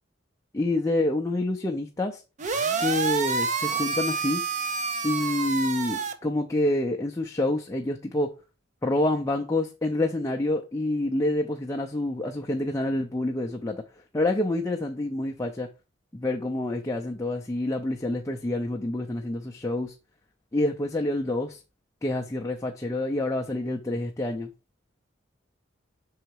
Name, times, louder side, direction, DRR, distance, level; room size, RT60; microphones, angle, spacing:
voice 1, 0.5-2.2 2.8-4.4 5.0-8.3 8.8-13.8 14.1-15.7 16.1-19.9 20.5-21.6 22.0-24.5, left 1 dB, 15° left, 0.5 m, -27 dB
sound 1, 2.4-6.1, right 4 dB, 40° right, 0.6 m, -28 dB
5.6 x 3.9 x 4.6 m
head